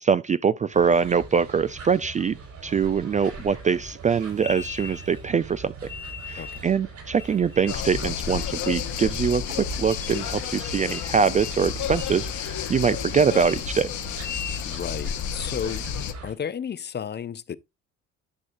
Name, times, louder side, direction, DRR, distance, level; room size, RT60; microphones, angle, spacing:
voice 1, 0.0-2.4 2.6-5.7 6.3-13.9, right 6 dB, 25° right, 0.3 m, -23 dB
sound 1, 0.7-16.3, right 4 dB, 60° right, 5.3 m, -42 dB
sound 2, 4.4-5.2 5.9-6.7 7.2-7.9 8.4-8.9 9.3-9.4 9.9-10.3 10.6-11.1 11.4-11.6 11.9-12.2 12.6-13.1 13.3-13.6 14.1-14.7, left 6 dB, 5° left, 1.0 m, -40 dB
voice 2, 6.4-6.7 14.6-15.8 16.2-17.6, left 7 dB, 30° left, 0.6 m, -33 dB
sound 3, 7.7-16.1, left 8 dB, 60° left, 1.0 m, -31 dB
11.0 x 6.3 x 2.5 m
hypercardioid pair, 60°, 33 cm